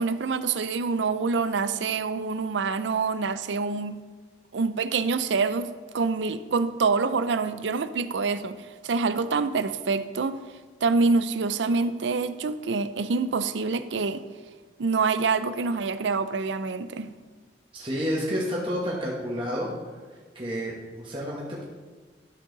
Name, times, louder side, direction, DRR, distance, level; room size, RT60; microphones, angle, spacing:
voice 1, 0.0-4.0 4.5-5.7 5.9-8.6 8.8-10.4 10.8-14.2 14.8-17.1, right 4 dB, 80° right, 0.5 m, -26 dB
voice 2, 17.7-19.7 20.3-21.6, equal, 30° right, 1.3 m, -30 dB
11.5 x 7.3 x 3.9 m
head